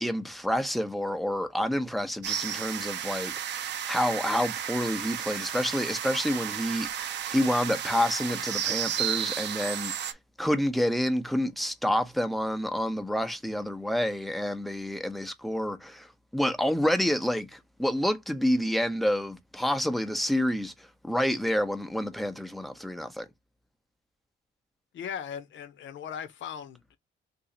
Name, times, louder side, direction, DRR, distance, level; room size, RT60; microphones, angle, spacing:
voice 1, 0.0-23.3, equal, ahead, 0.7 m, -28 dB
sound 1, 2.2-10.1, right 9 dB, 60° right, 0.6 m, -33 dB
voice 2, 24.9-27.0, left 8 dB, 70° left, 0.9 m, -38 dB
3.0 x 2.7 x 3.8 m
cardioid pair, 90°, 20 cm